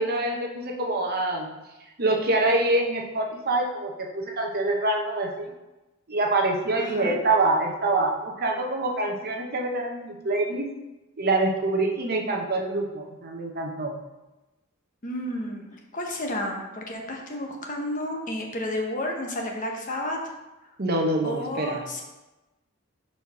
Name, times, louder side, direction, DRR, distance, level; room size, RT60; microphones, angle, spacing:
voice 1, 0.0-1.5 2.0-5.5 6.1-10.7 11.2-14.0 20.8-21.8, right 2 dB, 45° right, 1 dB, 0.9 m, -25 dB
voice 2, 6.8-7.2 15.0-15.7 15.9-20.2 21.2-22.0, left 1 dB, 35° left, 1 dB, 0.9 m, -31 dB
4.7 x 4.4 x 5.7 m, 1.1 s
head